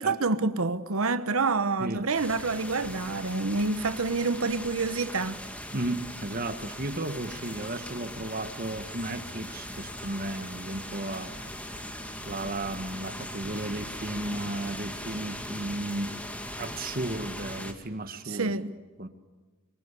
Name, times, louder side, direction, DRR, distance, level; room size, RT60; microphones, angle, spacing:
voice 1, 0.0-5.4 18.2-18.8, right 3 dB, 75° right, 1.1 m, -28 dB
sound 1, 2.1-17.7, left 1 dB, 5° left, 2.3 m, -40 dB
sound 2, 2.9-16.0, right 1 dB, 35° left, 7.7 m, -54 dB
voice 2, 5.7-11.3 11.6-16.2 16.6-18.6 19.0-19.1, right 1 dB, 40° right, 1.5 m, -34 dB
25.5 x 24.0 x 8.3 m
head